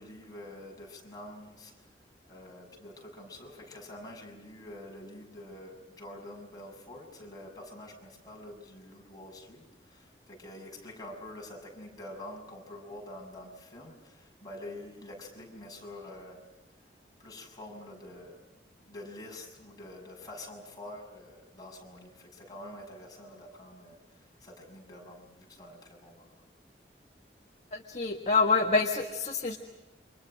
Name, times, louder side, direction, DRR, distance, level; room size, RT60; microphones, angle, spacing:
voice 1, 0.0-1.9 2.3-16.4 17.2-18.5 18.9-26.3, left 1 dB, 25° left, 0 dB, 6.7 m, -47 dB
voice 2, 27.7-29.6, left 4 dB, 40° left, 2 dB, 1.5 m, -26 dB
29.0 x 25.5 x 6.3 m, 0.98 s
head